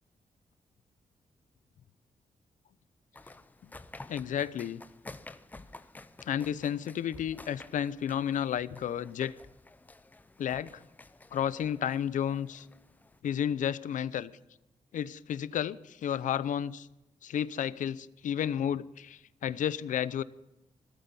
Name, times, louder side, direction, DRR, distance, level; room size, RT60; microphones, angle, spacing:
sound 1, 3.1-13.2, left 2 dB, 15° left, 0.5 m, -51 dB
voice 1, 4.1-4.8 6.2-9.3 10.4-10.8 11.3-12.7 13.2-14.3 14.9-16.9 17.2-20.2, left 9 dB, 80° left, 17 dB, 0.6 m, -32 dB
17.0 x 13.5 x 5.4 m, 0.95 s
wide cardioid pair, 180°, 13 cm